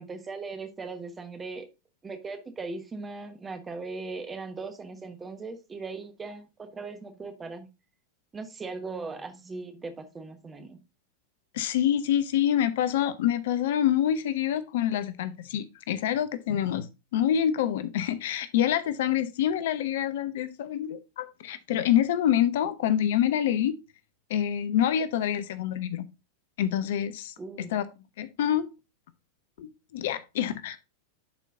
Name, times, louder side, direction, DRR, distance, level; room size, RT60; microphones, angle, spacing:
voice 1, 0.0-1.7 2.0-7.7 8.3-10.8 27.4-27.7, right 3 dB, 15° right, 1.2 m, -39 dB
voice 2, 11.5-23.8 24.3-26.1 26.6-27.9 28.2-28.7 29.6-30.8, left 10 dB, 55° left, 0.6 m, -26 dB
11.0 x 4.5 x 2.5 m
figure-of-eight pair, 90°, 0 cm